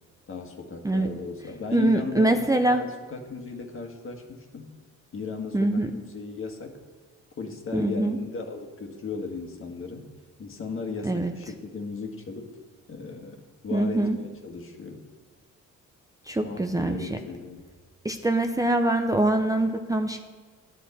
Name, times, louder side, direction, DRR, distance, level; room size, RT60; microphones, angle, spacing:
voice 1, 0.3-4.7 5.1-6.8 7.4-10.1 10.4-12.5 12.9-15.1 16.4-17.6, left 4 dB, 45° left, 3 dB, 1.5 m, -36 dB
voice 2, 1.7-2.8 5.5-5.9 7.7-8.2 11.0-11.3 13.7-14.2 16.3-17.0 18.0-20.2, right 2 dB, 10° right, 5 dB, 0.6 m, -24 dB
11.0 x 9.1 x 4.2 m, 1.5 s
cardioid pair, 90°, 30 cm